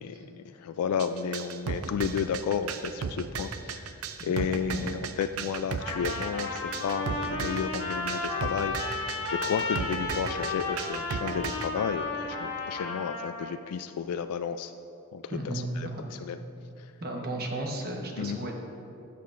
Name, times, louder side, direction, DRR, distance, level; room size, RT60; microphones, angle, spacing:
voice 1, 0.0-4.0 4.2-14.7 15.1-15.9 16.2-16.4 18.2-18.4, left 7 dB, 85° left, 10 dB, 0.3 m, -32 dB
sound 1, 1.0-11.7, right 5 dB, 70° right, 0.5 m, -35 dB
voice 2, 4.2-4.9 15.3-16.1 17.0-18.6, right 1 dB, 45° right, 1 dB, 1.2 m, -35 dB
Trumpet, 5.8-13.5, left 3 dB, 65° left, 1.5 m, -33 dB
15.5 x 6.7 x 2.5 m, 2.8 s
head